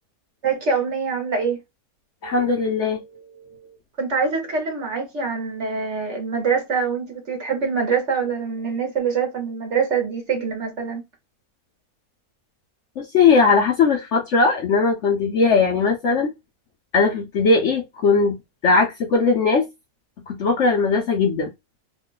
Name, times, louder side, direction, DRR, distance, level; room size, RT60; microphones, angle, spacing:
voice 1, 0.4-1.6 4.0-11.0, right 5 dB, 50° right, 1.2 m, -24 dB
voice 2, 2.2-3.6 13.0-16.3 16.9-18.4 18.6-19.7 20.3-21.5, left 4 dB, 60° left, 0.8 m, -19 dB
3.0 x 2.4 x 3.8 m
omnidirectional pair, 1.7 m